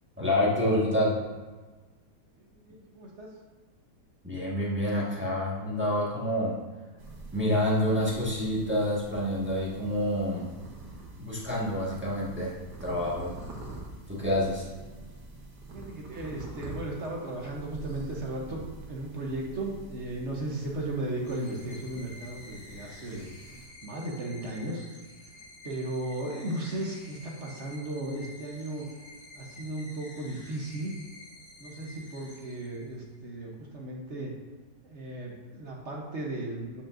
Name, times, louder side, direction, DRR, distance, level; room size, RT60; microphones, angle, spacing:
voice 1, 0.2-1.2 4.2-6.6 7.3-10.5 11.2-13.3 14.1-14.7, left 1 dB, 5° right, -6 dB, 1.3 m, -28 dB
voice 2, 2.4-3.3 15.7-18.6 18.9-23.3 23.8-24.8 25.6-28.9 29.3-31.0 31.6-34.3 34.8-36.8, right 1 dB, 50° right, -2 dB, 1.1 m, -35 dB
sound 1, 7.0-23.7, right 2 dB, 70° right, 1.7 m, -46 dB
sound 2, 21.2-33.2, left 2 dB, 55° left, 1.5 m, -50 dB
8.6 x 5.0 x 2.5 m, 1.3 s
omnidirectional pair, 1.8 m